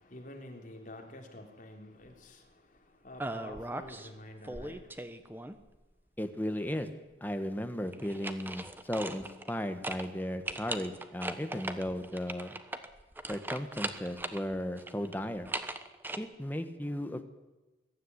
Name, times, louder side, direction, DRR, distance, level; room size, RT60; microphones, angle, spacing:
voice 1, 0.0-5.1, left 1 dB, 45° left, 2 dB, 3.7 m, -49 dB
sound 1, 3.2-4.1 4.4-5.8 7.9-9.6 9.8-10.1 10.4-14.4 14.8-16.2, right 2 dB, 10° right, 1.1 m, -39 dB
voice 2, 6.2-12.6 13.3-15.5 16.2-17.3, equal, 10° left, 8 dB, 1.5 m, -36 dB
22.5 x 13.0 x 9.8 m, 1.1 s
head